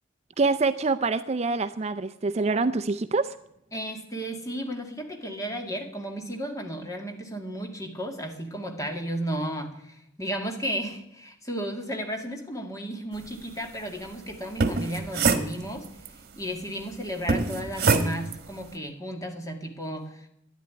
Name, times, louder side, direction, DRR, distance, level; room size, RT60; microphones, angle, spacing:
voice 1, 0.4-3.4, right 3 dB, 35° right, 11 dB, 0.4 m, -25 dB
voice 2, 3.7-15.9 16.4-20.3, equal, 15° left, 3 dB, 2.1 m, -34 dB
sound 1, 14.4-16.1 17.3-18.4, right 3 dB, 55° right, 1.3 m, -25 dB
11.5 x 11.0 x 9.4 m, 0.77 s
head